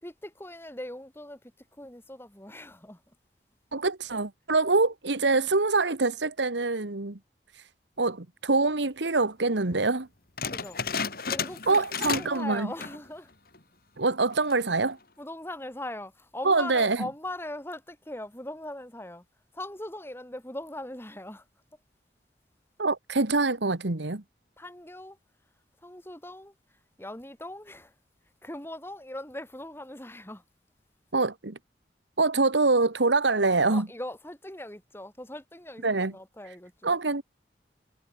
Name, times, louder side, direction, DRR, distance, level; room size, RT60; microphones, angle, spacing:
voice 1, 0.0-3.1 10.5-10.8 11.3-13.3 15.2-19.2 19.5-21.5 24.6-25.2 25.8-27.9 28.4-30.4 33.7-37.0, left 1 dB, 15° left, 4.4 m, -40 dB
voice 2, 3.7-7.2 7.5-7.7 8.0-10.1 11.7-12.7 14.0-15.0 16.4-17.0 22.8-24.2 31.1-31.6 32.2-33.9 35.8-36.1 36.8-37.2, right 3 dB, 85° right, 1.6 m, -25 dB
sound 1, 10.4-12.4 12.7-13.1 13.5-13.6 14.3-14.7, left 6 dB, 55° left, 4.1 m, -32 dB
head